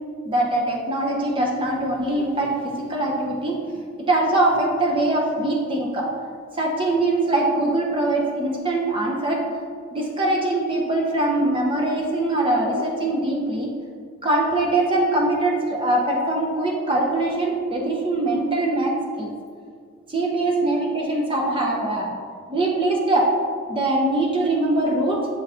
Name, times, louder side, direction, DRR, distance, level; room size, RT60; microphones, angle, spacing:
voice 1, 0.2-3.6 4.0-6.1 6.5-9.4 9.9-13.7 14.2-19.3 20.1-22.1 22.5-23.3 23.7-25.3, right 2 dB, 25° right, -1 dB, 0.7 m, -22 dB
7.0 x 4.1 x 4.2 m, 2.1 s
head